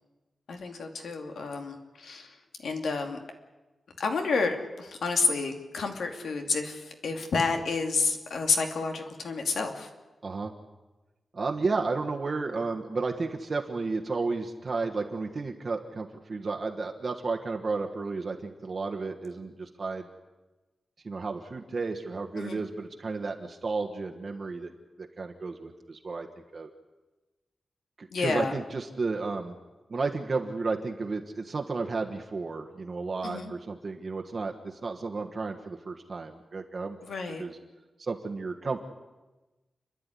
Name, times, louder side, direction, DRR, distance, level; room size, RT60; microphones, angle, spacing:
voice 1, 0.5-2.3 2.6-3.2 4.0-9.9 22.4-22.6 28.1-28.5 33.2-33.5 37.1-37.4, left 4 dB, 85° left, 4 dB, 2.7 m, -30 dB
voice 2, 11.3-20.1 21.0-24.7 25.0-26.3 26.5-26.7 28.0-29.6 29.9-37.0 37.3-37.6 38.0-38.8, right 3 dB, 40° right, 2 dB, 1.4 m, -32 dB
30.0 x 11.0 x 9.9 m, 1.1 s
wide cardioid pair, 170°, 0 cm